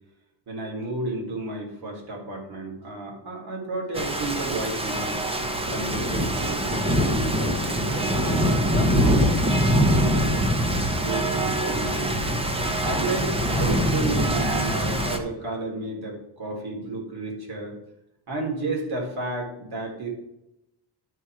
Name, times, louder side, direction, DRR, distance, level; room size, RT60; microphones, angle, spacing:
voice 1, 0.5-5.2 5.7-9.3 9.6-10.3 10.9-12.2 12.6-17.8 18.3-20.1, right 2 dB, 60° right, -2 dB, 3.9 m, -32 dB
Rain, 3.9-15.2, equal, 15° right, 1.1 m, -23 dB
12.5 x 4.4 x 4.9 m, 0.85 s
cardioid pair, 120°, 43 cm